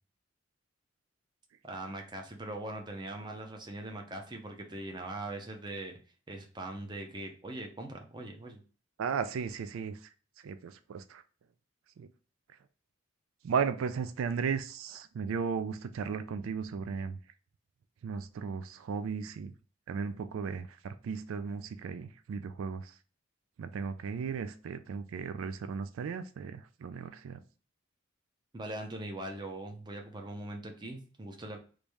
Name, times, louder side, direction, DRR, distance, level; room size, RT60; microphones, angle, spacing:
voice 1, 1.6-6.0 6.3-8.6 28.5-31.6, right 2 dB, 20° right, 0.6 m, -41 dB
voice 2, 9.0-10.0 10.4-11.2 12.0-12.1 13.4-17.2 18.0-19.5 19.9-22.9 23.6-27.4, right 6 dB, 85° right, 0.3 m, -35 dB
3.2 x 2.6 x 3.4 m
head